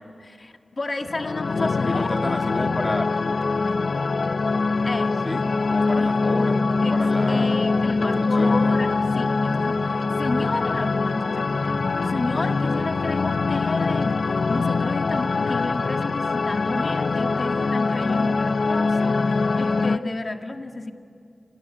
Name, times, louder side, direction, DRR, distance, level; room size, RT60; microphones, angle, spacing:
voice 1, 0.2-2.1 4.8-5.2 6.0-6.1 6.8-7.0 7.3-20.9, left 2 dB, 50° left, 5 dB, 1.9 m, -31 dB
sound 1, 1.0-20.0, left 3 dB, 70° left, 0.7 m, -23 dB
voice 2, 1.9-3.1 5.2-7.6 8.0-8.7, left 1 dB, 25° left, 4 dB, 2.0 m, -31 dB
27.5 x 19.0 x 9.9 m, 2.5 s
cardioid pair, 55°, 0 cm